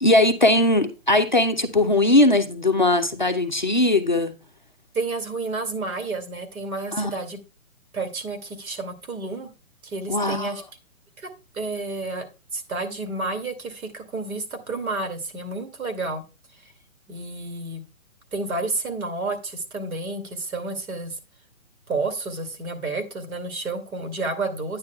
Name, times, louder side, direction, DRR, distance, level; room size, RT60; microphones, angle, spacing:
voice 1, 0.0-4.3 6.9-7.1 10.1-10.6, left 1 dB, 35° left, 0.5 m, -19 dB
voice 2, 4.9-7.4 7.9-9.5 9.8-10.6 11.2-11.3 11.5-12.3 12.5-16.2 17.1-17.8 18.3-21.2 21.9-24.8, right 3 dB, 75° right, 2.6 m, -30 dB
9.5 x 8.9 x 2.3 m
hypercardioid pair, 175°, 42 cm